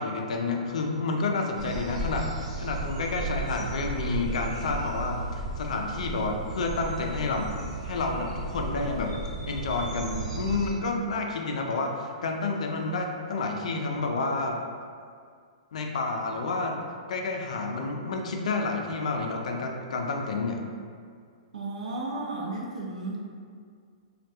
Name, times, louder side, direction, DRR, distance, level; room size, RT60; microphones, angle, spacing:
voice 1, 0.0-2.3 2.6-9.2 9.5-14.6 15.7-20.6, left 3 dB, 70° left, 2 dB, 0.3 m, -30 dB
sound 1, 1.6-10.7, right 2 dB, 55° right, 0.9 m, -35 dB
voice 2, 21.5-23.2, right 2 dB, 75° right, -2 dB, 0.5 m, -33 dB
2.2 x 2.2 x 2.7 m, 2.1 s
hypercardioid pair, 120°, 4 cm